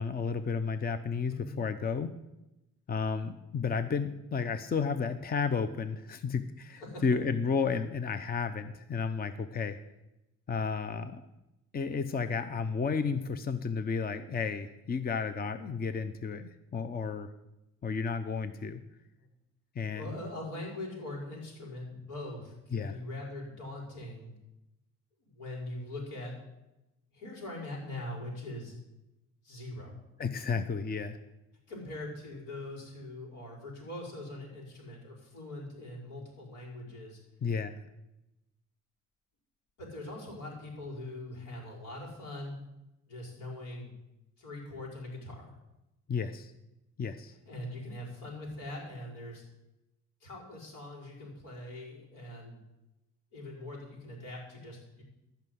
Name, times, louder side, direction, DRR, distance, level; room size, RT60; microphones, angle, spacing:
voice 1, 0.0-2.1 2.9-9.8 10.5-11.3 11.7-17.3 17.8-18.8 19.8-20.2 22.7-23.0 30.2-31.2 37.4-37.8 46.1-46.5 47.0-47.3, left 5 dB, 30° left, 10 dB, 0.7 m, -32 dB
voice 2, 1.2-1.6 6.8-7.0 19.2-19.3 19.9-24.4 25.2-26.4 27.1-28.7 29.4-30.0 31.7-37.2 39.8-42.6 43.0-43.9 44.4-45.5 47.4-49.4 50.2-52.6 53.3-55.0, left 1 dB, 85° left, -2 dB, 4.9 m, -42 dB
14.5 x 5.8 x 7.8 m, 0.94 s
cardioid pair, 90°, 30 cm